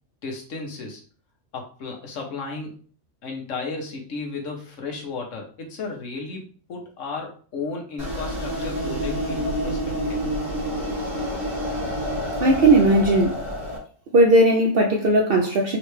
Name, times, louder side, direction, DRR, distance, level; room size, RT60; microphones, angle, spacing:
voice 1, 0.2-1.0 1.5-2.8 3.2-10.2, left 4 dB, 70° left, 1.3 m, -34 dB
sound 1, 8.0-13.8, equal, 20° right, 1.9 m, -28 dB
voice 2, 12.4-13.3 14.1-15.8, right 1 dB, 55° right, 0.7 m, -17 dB
3.8 x 3.3 x 3.1 m
omnidirectional pair, 1.4 m